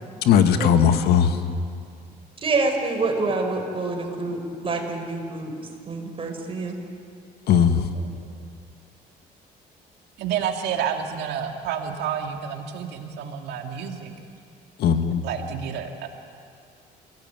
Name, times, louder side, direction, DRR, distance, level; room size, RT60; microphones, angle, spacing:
voice 1, 0.2-1.4 7.5-7.9 14.8-15.2, left 8 dB, 70° left, 8 dB, 1.8 m, -18 dB
voice 2, 1.1-1.6 5.4-5.9 7.9-8.3 10.2-14.1 15.2-16.1, right 8 dB, 80° right, 4 dB, 2.4 m, -30 dB
voice 3, 2.4-5.5 5.9-6.8, right 3 dB, 35° right, 3 dB, 4.9 m, -26 dB
29.5 x 17.5 x 9.2 m, 2.2 s
cardioid pair, 110°, 17 cm